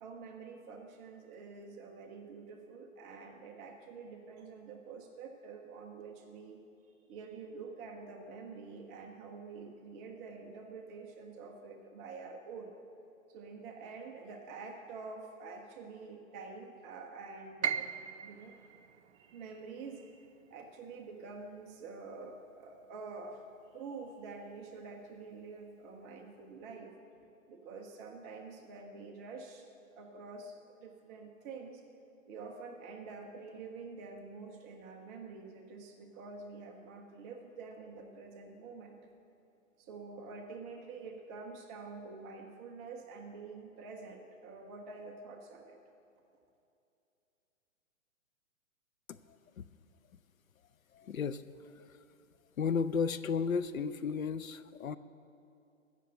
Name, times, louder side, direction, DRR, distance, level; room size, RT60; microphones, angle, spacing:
voice 1, 0.0-6.6 7.1-12.7 13.3-18.7 19.1-20.3 20.5-23.4 23.7-26.9 27.5-29.7 30.0-31.8 32.3-39.0 39.8-45.8, right 4 dB, 10° right, 2 dB, 0.4 m, -47 dB
Piano, 17.6-23.6 23.9-25.0 25.4-25.5 26.3-26.6, right 7 dB, 55° right, 0.6 m, -42 dB
voice 2, 50.9-51.4 51.8-51.9 52.6-55.0, left 6 dB, 85° left, 13 dB, 0.7 m, -33 dB
15.5 x 6.7 x 7.6 m, 2.7 s
hypercardioid pair, 130°, 40 cm